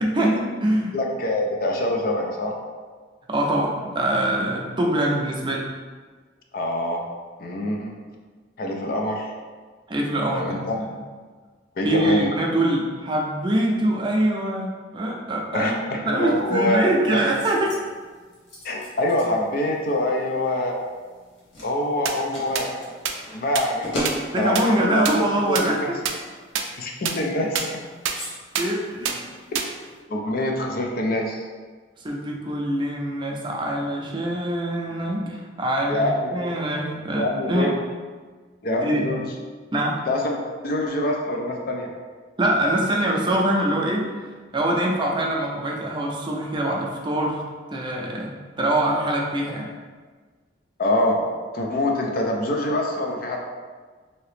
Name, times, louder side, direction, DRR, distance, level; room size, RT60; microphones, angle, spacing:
voice 1, 0.0-0.9 3.3-5.7 9.9-10.9 11.8-17.7 24.3-26.0 28.6-29.3 32.0-37.7 38.8-39.1 39.7-40.0 42.4-44.0 44.5-47.4 47.7-48.3 48.6-49.7, right 1 dB, 25° right, -1 dB, 0.5 m, -24 dB
voice 2, 0.9-2.6 6.5-7.0 7.4-7.9 8.6-9.3 10.3-10.8 11.8-12.3 15.5-16.9 18.6-20.8 21.6-22.7 23.3-25.0 25.5-25.9 26.8-27.6 30.1-31.4 35.9-36.5 37.1-37.7 38.6-39.2 40.1-40.4 40.6-41.9 50.8-51.2 51.5-53.4, left 1 dB, 50° left, 1 dB, 0.4 m, -25 dB
sound 1, 16.2-30.0, equal, 75° left, 1.1 m, -39 dB
sound 2, 22.0-22.1 22.5-22.6 23.0-23.1 23.5-23.6 24.0-24.1 24.5-24.6 25.0-25.1 25.5-25.6 26.0-26.1 26.5-26.6 27.0-27.1 27.5-27.6 28.0-28.1 28.5-28.6 29.0-29.1 29.5-29.6, right 8 dB, 90° right, 0.3 m, -24 dB
2.8 x 2.8 x 3.2 m, 1.4 s
head